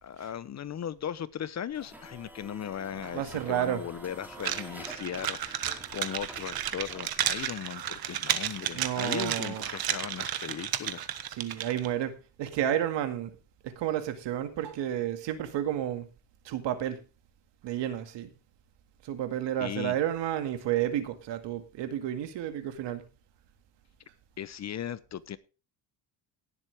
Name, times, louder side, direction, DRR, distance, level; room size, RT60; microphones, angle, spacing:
voice 1, 0.0-11.1 19.6-19.9 24.4-25.4, left 9 dB, 35° left, 0.8 m, -37 dB
sound 1, 1.7-7.5, right 1 dB, 5° right, 3.0 m, -48 dB
sound 2, 2.9-10.6, right 6 dB, 35° right, 2.1 m, -52 dB
voice 2, 3.1-3.8 8.7-9.6 11.3-13.4 13.6-16.1 16.4-17.0 17.6-18.3 19.0-23.0, right 11 dB, 70° right, 2.2 m, -31 dB
sound 3, 4.4-11.9, right 11 dB, 55° right, 1.4 m, -33 dB
18.0 x 7.5 x 3.5 m
cardioid pair, 115°, 44 cm